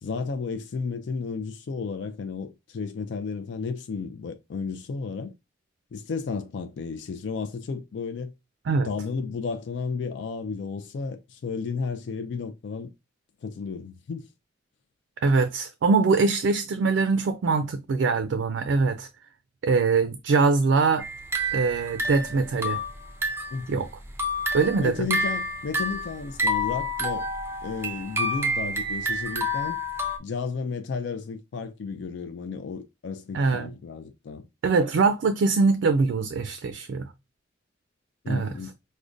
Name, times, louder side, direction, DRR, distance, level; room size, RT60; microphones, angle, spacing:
voice 1, 0.0-5.3 5.9-8.3 8.8-12.9 13.4-14.3 23.5-23.8 24.8-27.3 27.6-29.8 30.2-34.5 38.2-38.7, left 5 dB, 75° left, 0.4 m, -33 dB
voice 2, 15.2-19.1 19.6-21.0 21.5-22.8 23.7-23.9 24.5-24.9 33.3-33.7 34.6-37.1 38.3-38.5, right 4 dB, 80° right, 0.3 m, -23 dB
sound 1, 21.0-23.6 24.0-30.2, equal, 15° right, 0.4 m, -29 dB
4.9 x 2.1 x 2.5 m
head